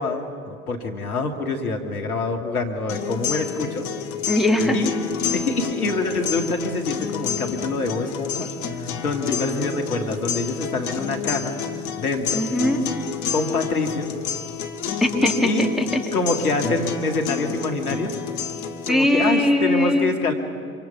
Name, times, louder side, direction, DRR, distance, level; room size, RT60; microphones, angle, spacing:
voice 1, 0.0-3.9 4.7-4.9 5.3-11.6 12.0-12.5 13.3-14.1 15.4-15.7 16.1-18.1 18.9-20.3, left 3 dB, 80° left, 4 dB, 2.1 m, -26 dB
sound 1, 2.9-18.9, left 7 dB, 60° left, 1.9 m, -29 dB
voice 2, 4.3-4.8 12.3-12.8 15.0-16.0 18.9-20.1, left 1 dB, ahead, 1 dB, 2.8 m, -20 dB
26.5 x 26.0 x 6.0 m, 2.2 s
figure-of-eight pair, 70°, 43 cm